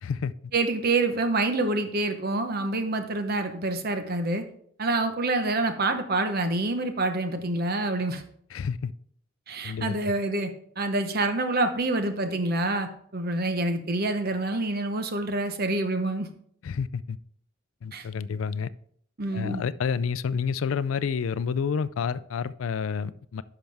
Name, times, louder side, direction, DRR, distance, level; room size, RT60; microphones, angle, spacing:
voice 1, 0.0-0.3 8.5-8.9 9.6-10.0 16.6-17.2 17.8-18.7 19.3-23.4, left 6 dB, 85° left, 0.4 m, -29 dB
voice 2, 0.5-4.4 4.8-8.2 9.5-16.3 17.9-18.1 19.2-19.6, right 2 dB, 50° right, 0.9 m, -27 dB
10.5 x 5.9 x 3.4 m
head